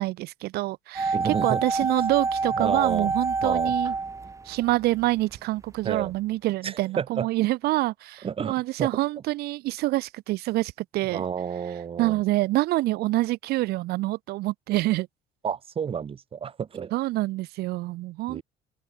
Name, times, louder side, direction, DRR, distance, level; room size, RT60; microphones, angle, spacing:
voice 1, 0.0-3.9 4.4-11.2 12.0-15.1 16.9-18.4, right 18 dB, 65° right, 1.1 m, -26 dB
sound 1, 1.0-5.1 5.3-5.4, right 4 dB, 20° right, 1.9 m, -27 dB
voice 2, 1.1-1.6 2.6-3.1 3.4-3.7 5.8-6.1 6.6-7.3 8.2-8.5 8.8-8.9 11.1-12.2 15.4-16.9 18.3-18.4, right 7 dB, 35° right, 1.7 m, -30 dB
open air
cardioid pair, 110°, 17 cm